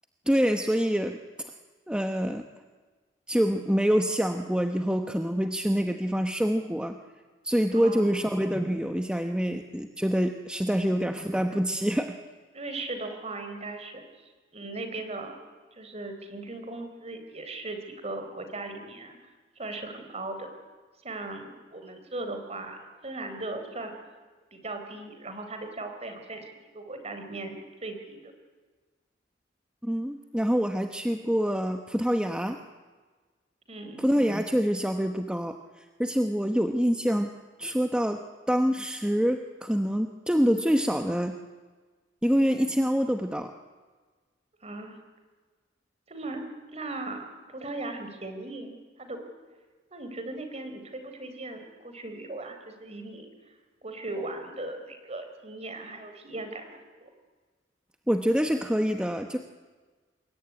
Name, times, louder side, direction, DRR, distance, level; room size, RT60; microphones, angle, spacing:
voice 1, 0.3-1.5 1.9-2.5 3.3-7.0 7.4-12.1 29.8-32.6 34.0-37.3 37.6-41.3 42.2-43.5 58.1-59.4, equal, 5° right, 5 dB, 1.0 m, -26 dB
voice 2, 7.7-8.3 10.7-11.0 12.5-14.0 14.5-15.4 15.8-20.5 21.0-24.0 24.5-26.5 26.7-28.3 33.7-34.1 44.6-45.0 46.1-46.5 46.7-48.7 49.0-49.2 49.9-53.3 53.8-57.1, right 2 dB, 35° right, 7 dB, 4.2 m, -38 dB
26.5 x 21.5 x 9.8 m, 1.4 s
head